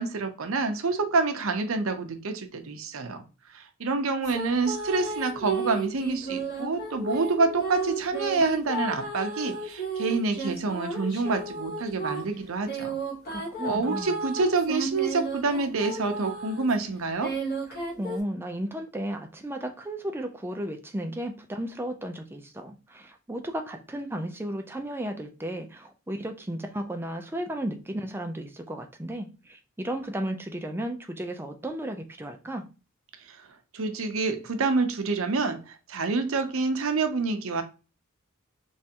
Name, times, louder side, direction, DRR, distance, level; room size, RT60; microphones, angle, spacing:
voice 1, 0.0-3.2 3.5-13.0 13.6-17.3 33.3-33.4 33.7-37.6, right 3 dB, 65° right, 0.6 m, -27 dB
sound 1, 4.2-16.7 17.2-18.2, right 2 dB, 45° left, 1.3 m, -33 dB
voice 2, 13.3-14.1 17.7-32.6, right 1 dB, 10° right, 0.4 m, -34 dB
3.4 x 3.1 x 2.8 m
head